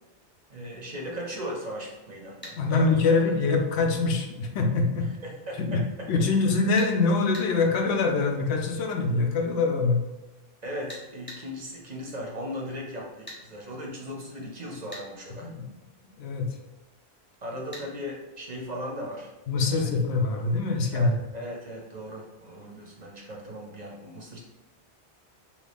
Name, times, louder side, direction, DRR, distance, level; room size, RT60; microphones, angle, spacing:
voice 1, 0.5-3.2 5.0-6.3 10.6-15.5 17.4-19.3 19.6-20.0 20.9-24.4, equal, 45° right, -1 dB, 0.6 m, -38 dB
sound 1, 2.4-2.6 6.8-6.9 7.3-7.5 10.9-11.4 13.3-13.4 14.9-15.1 17.7-17.9, equal, 10° left, 0.9 m, -41 dB
voice 2, 2.6-5.1 5.7-5.8 6.1-10.0 15.4-15.7 16.2-16.5 19.5-21.1, left 3 dB, 85° left, 3 dB, 0.9 m, -24 dB
2.9 x 2.7 x 3.4 m, 1.1 s
omnidirectional pair, 1.1 m